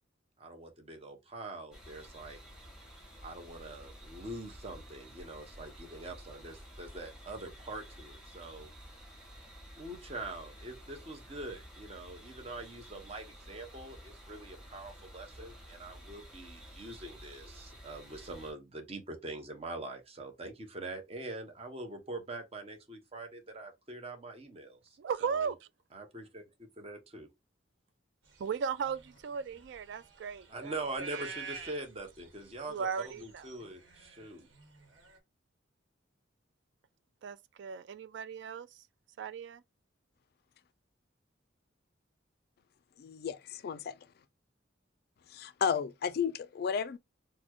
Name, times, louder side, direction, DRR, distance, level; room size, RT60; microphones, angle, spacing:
voice 1, 0.4-2.4 3.2-8.7 9.8-25.5 25.9-26.4 26.8-27.3 30.5-32.8 33.2-34.5, right 2 dB, 30° right, 0.8 m, -44 dB
sound 1, 1.7-18.5, equal, 5° right, 1.4 m, -52 dB
voice 2, 25.0-25.7 28.4-31.1 32.7-33.5 37.2-38.8 39.2-39.6, right 6 dB, 60° right, 0.3 m, -37 dB
sound 2, 28.4-35.2, right 5 dB, 80° right, 1.1 m, -49 dB
voice 3, 43.0-44.0 45.3-47.0, left 7 dB, 55° left, 0.3 m, -33 dB
4.0 x 2.1 x 3.0 m
head